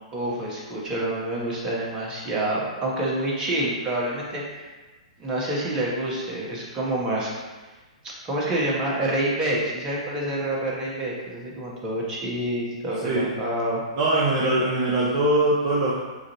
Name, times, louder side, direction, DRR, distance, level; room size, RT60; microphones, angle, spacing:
voice 1, 0.1-4.7 5.2-7.3 8.2-13.8, right 1 dB, 20° right, -4 dB, 1.0 m, -27 dB
voice 2, 14.0-16.0, right 1 dB, 40° right, -6 dB, 0.6 m, -22 dB
4.9 x 2.5 x 2.8 m, 1.3 s
figure-of-eight pair, 110°, 4 cm